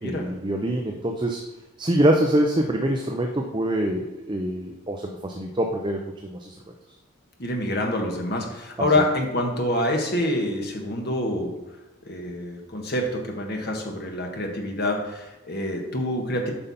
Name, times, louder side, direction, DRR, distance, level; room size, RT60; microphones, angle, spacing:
voice 1, 0.0-1.4 1.8-6.5 8.8-8.9, right 1 dB, 20° right, 2 dB, 0.6 m, -25 dB
voice 2, 7.4-11.6 12.0-16.5, left 1 dB, 50° left, 1 dB, 1.4 m, -26 dB
8.9 x 5.6 x 4.1 m, 1.0 s
head